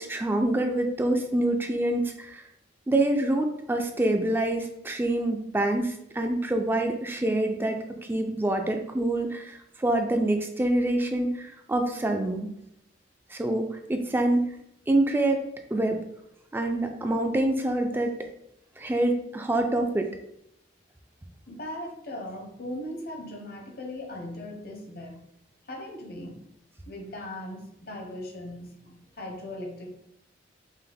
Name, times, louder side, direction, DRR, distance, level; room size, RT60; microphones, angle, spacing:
voice 1, 0.0-2.4 2.9-7.8 8.1-12.5 13.3-14.4 14.9-15.5 15.7-16.0 16.5-18.1 18.8-20.1, right 1 dB, 10° right, 4 dB, 0.3 m, -26 dB
voice 2, 21.5-25.2 25.7-26.4 26.9-30.0, left 1 dB, 55° left, 2 dB, 0.9 m, -38 dB
5.4 x 2.1 x 3.5 m, 0.78 s
head